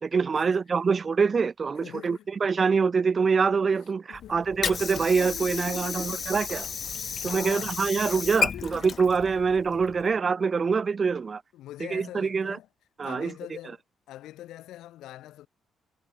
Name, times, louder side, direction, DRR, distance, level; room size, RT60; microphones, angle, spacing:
voice 1, 0.0-6.6 7.2-11.4 11.9-12.6 13.0-13.3, right 5 dB, 40° right, 0.8 m, -25 dB
voice 2, 1.8-2.3 4.1-4.5 5.1-6.3 7.0-9.1 9.8-9.9 11.5-12.7 13.0-13.8 14.1-15.5, left 14 dB, 85° left, 4.1 m, -44 dB
Water / Sink (filling or washing), 4.1-10.1, left 6 dB, 45° left, 1.3 m, -33 dB
cardioid pair, 90°, 0 cm